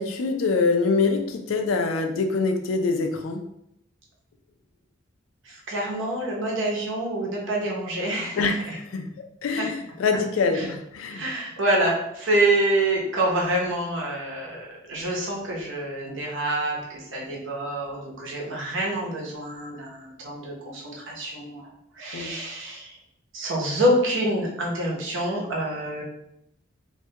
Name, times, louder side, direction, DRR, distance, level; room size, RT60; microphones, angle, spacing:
voice 1, 0.0-3.4 8.4-9.1 9.4-11.2 22.1-22.4, left 4 dB, 85° left, 5 dB, 0.4 m, -25 dB
voice 2, 5.4-8.8 9.6-9.7 10.5-10.7 11.1-21.7 22.0-23.0 23.3-26.0, right 1 dB, 65° right, -2 dB, 0.7 m, -27 dB
2.2 x 2.1 x 2.7 m, 0.78 s
head